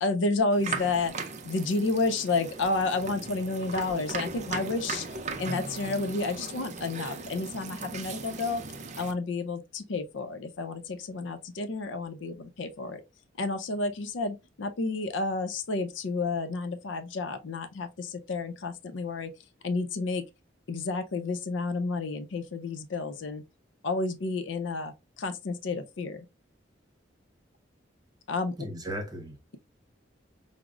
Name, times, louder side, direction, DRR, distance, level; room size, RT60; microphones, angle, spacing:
voice 1, 0.0-1.1 1.4-5.0 5.4-8.6 9.0-13.0 13.4-19.3 19.6-20.2 20.7-23.4 23.8-24.9 25.2-26.3 28.3-28.5, left 3 dB, 80° left, 0.5 m, -30 dB
sound 1, 0.5-9.1, right 4 dB, 40° right, 0.4 m, -38 dB
voice 2, 28.6-29.6, equal, 20° right, 0.9 m, -37 dB
4.9 x 2.0 x 2.3 m
head